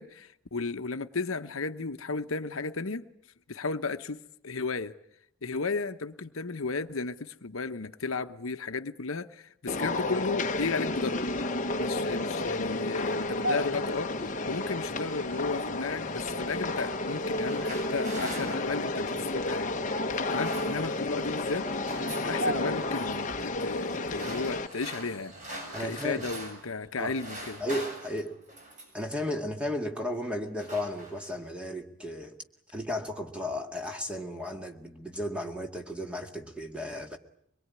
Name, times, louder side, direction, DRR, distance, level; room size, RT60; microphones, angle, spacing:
voice 1, 0.0-3.0 3.5-4.9 5.4-11.2 11.7-19.7 20.3-21.7 22.2-25.3 25.8-27.6, left 4 dB, 75° left, 1.0 m, -34 dB
sound 1, 9.7-24.7, left 2 dB, 35° left, 1.1 m, -31 dB
sound 2, 10.4-26.5, right 1 dB, 70° right, 3.3 m, -43 dB
sound 3, 17.2-19.4 20.1-21.2 21.4-22.3 22.8-23.2 23.9-26.7 27.0-29.1 29.8-30.1 30.4-31.5, right 1 dB, 35° right, 7.6 m, -43 dB
voice 2, 25.7-26.2 27.0-27.1 27.6-28.3 28.9-32.4 32.7-37.2, left 1 dB, 5° right, 2.0 m, -34 dB
24.0 x 22.5 x 9.6 m
head